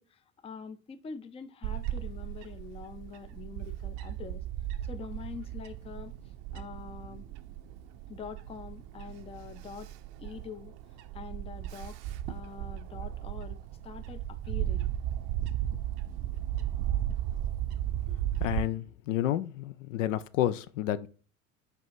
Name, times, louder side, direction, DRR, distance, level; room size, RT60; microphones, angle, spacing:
voice 1, 0.0-4.4 4.8-6.1 6.5-7.3 8.1-9.9 10.2-10.7 11.1-12.0 12.3-13.6 13.8-15.0 17.1-17.2, left 6 dB, 15° left, 0.5 m, -45 dB
Bird / Wind, 1.6-18.6, right 12 dB, 50° right, 0.7 m, -35 dB
voice 2, 18.4-21.1, left 12 dB, 65° left, 0.6 m, -30 dB
5.2 x 4.9 x 4.6 m
figure-of-eight pair, 70°, 42 cm